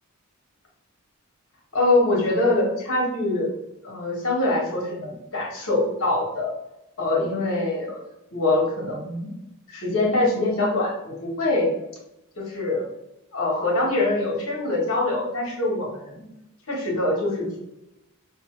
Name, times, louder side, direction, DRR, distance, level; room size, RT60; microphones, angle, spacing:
voice 1, 1.7-3.5 3.8-6.5 7.0-8.0 8.3-9.3 9.7-11.7 12.4-12.8 13.3-16.3 16.7-17.6, left 2 dB, 65° left, -3 dB, 1.5 m, -24 dB
5.3 x 2.8 x 3.2 m, 0.88 s
head